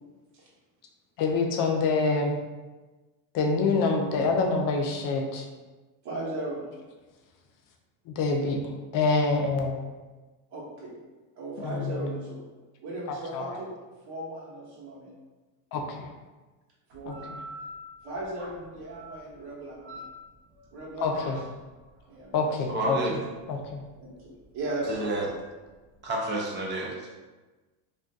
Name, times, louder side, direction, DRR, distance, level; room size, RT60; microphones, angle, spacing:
voice 1, 1.2-2.3 3.3-5.5 8.1-9.8 11.6-12.1 13.1-13.6 15.7-16.1 17.1-17.2 21.0-21.4 22.3-23.0 23.5-23.8, left 4 dB, 45° left, 2 dB, 0.5 m, -26 dB
voice 2, 6.0-6.7 10.5-10.9 11.4-12.4 12.8-13.7 14.1-15.1 16.9-17.3 18.0-20.0 20.7-21.3 22.1-22.5 24.0-25.0, right 1 dB, 55° right, -5 dB, 1.1 m, -37 dB
sound 1, 16.9-26.1, equal, 90° right, 0.7 m, -47 dB
voice 3, 22.7-23.1 24.9-25.3 26.0-27.2, right 2 dB, 25° right, -2 dB, 0.4 m, -30 dB
2.5 x 2.4 x 2.3 m, 1.2 s
supercardioid pair, 110°, 47 cm